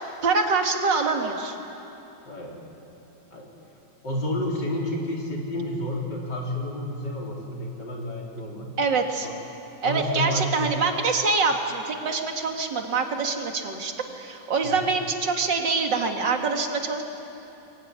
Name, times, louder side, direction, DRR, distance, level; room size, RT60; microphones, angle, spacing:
voice 1, 0.2-1.6 8.8-9.3 9.8-17.0, right 4 dB, 80° right, 3 dB, 2.6 m, -25 dB
voice 2, 2.3-2.6 3.3-3.5 4.0-8.7 9.2-9.3 9.8-10.7 14.6-14.8, left 1 dB, 75° left, -2 dB, 4.5 m, -30 dB
23.5 x 22.5 x 9.6 m, 2.9 s
omnidirectional pair, 1.9 m